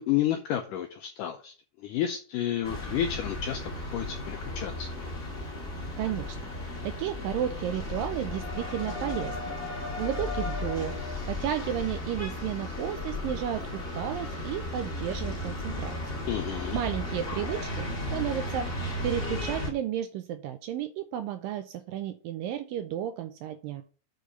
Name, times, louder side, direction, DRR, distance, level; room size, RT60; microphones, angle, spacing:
voice 1, 0.0-1.5 1.8-4.9 16.3-16.8, left 11 dB, 90° left, 6 dB, 1.8 m, -31 dB
sound 1, 2.6-19.7, left 2 dB, 25° left, 1.2 m, -35 dB
voice 2, 6.0-6.4 6.8-9.5 10.0-11.0 11.3-16.0 16.5-18.7 19.0-23.8, right 10 dB, 85° right, 8 dB, 2.0 m, -33 dB
6.5 x 5.0 x 6.6 m, 0.38 s
omnidirectional pair, 4.5 m